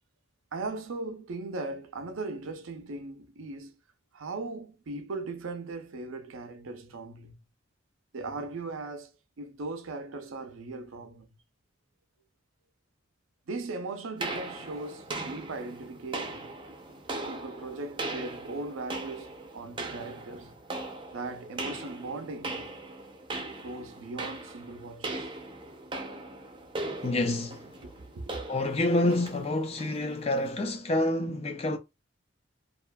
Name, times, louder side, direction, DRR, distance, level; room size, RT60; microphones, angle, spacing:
voice 1, 0.5-3.7 4.1-7.4 8.1-9.1 9.4-11.3 13.5-16.5 17.3-19.3 19.5-20.5 21.1-22.7 23.6-25.3 27.8-28.4, right 3 dB, 85° right, 0.6 m, -38 dB
sound 1, 14.2-30.6, right 2 dB, 25° right, 0.5 m, -39 dB
voice 2, 27.0-27.6 28.5-31.8, left 1 dB, 30° left, 0.5 m, -27 dB
2.8 x 2.4 x 2.2 m
head